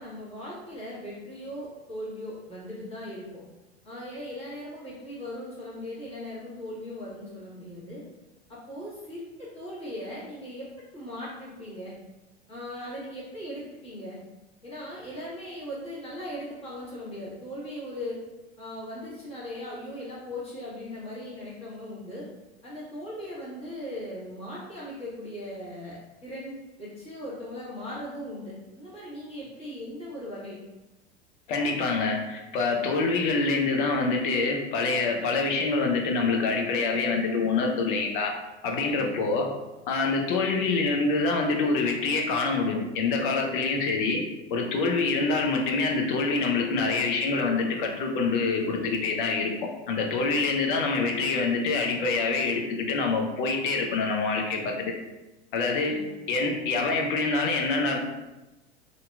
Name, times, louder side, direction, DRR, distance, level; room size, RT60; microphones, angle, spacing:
voice 1, 0.0-3.4 3.8-8.0 8.5-10.7 10.9-11.9 12.5-14.2 14.6-18.2 18.6-22.3 22.6-30.6 38.9-39.1 55.8-56.1, left 1 dB, 15° left, -9 dB, 1.3 m, -39 dB
voice 2, 31.5-38.4 38.6-39.5 39.9-44.2 44.5-54.9 55.5-58.0, left 3 dB, 50° left, 2 dB, 0.6 m, -26 dB
2.7 x 2.6 x 2.3 m, 1.0 s
figure-of-eight pair, 85°, 33 cm